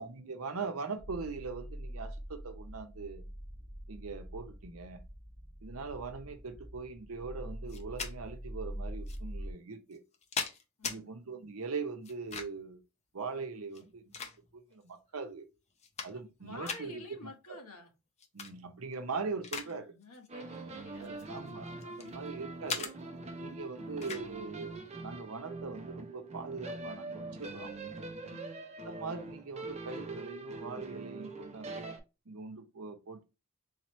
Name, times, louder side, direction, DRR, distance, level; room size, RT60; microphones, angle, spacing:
voice 1, 0.0-3.2 3.9-5.0 5.6-10.0 10.8-12.8 13.1-15.5 16.0-17.0 18.3-19.9 21.0-22.9 23.4-24.7 25.0-27.7 28.8-31.9 32.3-33.2, right 4 dB, 75° right, 0.8 m, -41 dB
sound 1, 1.0-9.5, equal, 60° left, 1.3 m, -44 dB
sound 2, 7.7-8.1 9.1-9.2 9.9-11.0 12.0-12.7 13.7-14.7 15.3-15.4 15.7-16.4 16.6-16.8 18.2-18.5 18.9-19.7 20.0-20.3 21.0-22.1 22.7-22.9 24.0-24.3, left 5 dB, 30° left, 0.6 m, -39 dB
voice 2, 10.8-11.1 16.1-17.9 19.6-21.3 21.9-22.2 28.2-28.5, left 2 dB, 90° left, 1.2 m, -50 dB
sound 3, 20.3-32.0, right 2 dB, 30° right, 0.6 m, -43 dB
4.1 x 2.9 x 3.0 m
head